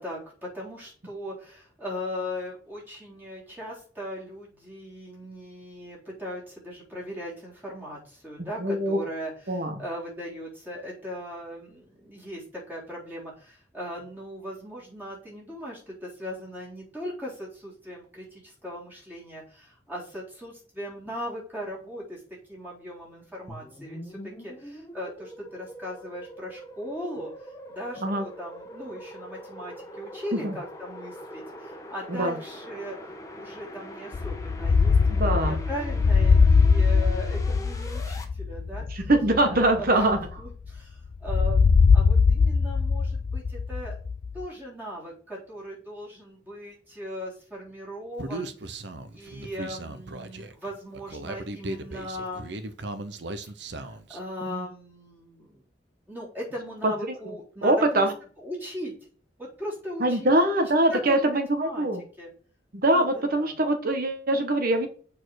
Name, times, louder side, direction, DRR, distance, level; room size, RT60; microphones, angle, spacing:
voice 1, 0.0-22.2 22.5-33.0 33.3-39.1 39.5-40.1 40.4-44.0 44.3-48.9 49.1-52.5 53.6-55.6 56.1-58.1 58.4-59.0 59.4-60.3 60.9-61.2 61.5-61.9 62.2-62.3 62.9-63.6, equal, 10° right, -5 dB, 3.8 m, -38 dB
voice 2, 8.6-9.0 9.5-9.7 28.0-28.2 30.3-30.6 32.1-32.3 35.2-35.6 38.9-40.2 54.4-54.7 56.8-56.9 57.2-57.3 57.6-58.1 60.0-62.0 62.7-64.9, right 1 dB, 55° right, 6 dB, 1.1 m, -23 dB
sound 1, 23.5-38.2, equal, 20° left, 1.3 m, -43 dB
sound 2, 34.1-40.8 41.3-44.5, left 5 dB, 50° left, 0.4 m, -21 dB
Human voice, 48.2-54.2, right 2 dB, 70° right, 0.8 m, -37 dB
7.0 x 4.3 x 6.3 m, 0.43 s
head